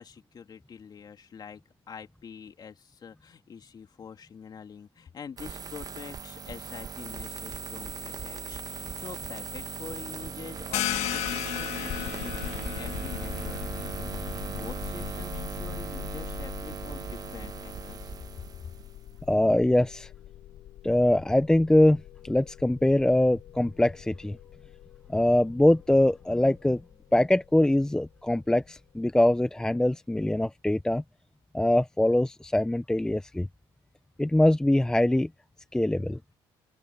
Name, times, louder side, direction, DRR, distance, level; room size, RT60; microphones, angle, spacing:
voice 1, 0.0-1.6 1.9-18.7, left 7 dB, 40° left, 3.1 m, -45 dB
sound 1, 5.4-19.2, right 6 dB, 35° right, 1.2 m, -38 dB
sound 2, 10.7-16.1, left 15 dB, 85° left, 1.7 m, -35 dB
sound 3, 11.9-28.8, left 13 dB, 70° left, 4.0 m, -43 dB
voice 2, 19.3-20.1 20.8-24.4 25.1-26.8 27.1-31.0 31.5-33.5 34.2-35.3 35.7-36.2, left 1 dB, 5° left, 0.8 m, -23 dB
open air
cardioid pair, 105°, 11 cm